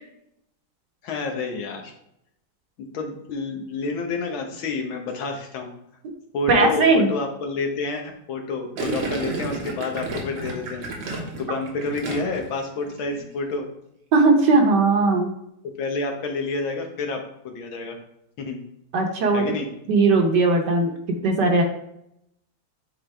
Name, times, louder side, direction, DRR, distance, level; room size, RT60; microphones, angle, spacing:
voice 1, 1.0-1.9 2.8-5.7 6.3-10.9 11.3-13.7 15.8-18.0 18.4-18.6 19.3-19.7, left 3 dB, 90° left, 3 dB, 1.8 m, -29 dB
voice 2, 6.5-7.1 8.8-8.9 14.1-15.3 18.9-19.4 19.9-20.9 21.2-21.6, right 3 dB, 65° right, 3 dB, 1.5 m, -18 dB
Gurgling, 8.8-12.5 12.8-13.2, right 3 dB, 80° right, 2.0 m, -32 dB
9.2 x 3.8 x 3.3 m, 0.78 s
omnidirectional pair, 2.1 m